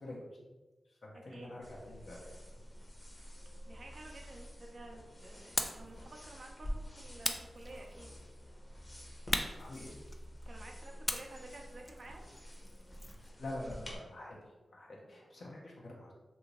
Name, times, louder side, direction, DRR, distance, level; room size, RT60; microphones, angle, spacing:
voice 1, 0.9-2.6 9.5-9.9 13.2-14.4 14.7-16.1, left 1 dB, 75° left, -3 dB, 0.6 m, -46 dB
sound 1, 1.6-14.0, equal, 45° left, 0.8 m, -48 dB
voice 2, 3.7-8.1 10.4-12.3, right 2 dB, 60° right, 1 dB, 0.5 m, -52 dB
sound 2, 5.6-5.9 7.2-8.1 9.3-10.4 11.1-13.3, left 1 dB, 20° left, 0.3 m, -38 dB
2.7 x 2.6 x 2.9 m, 1.2 s
cardioid pair, 45°, 0 cm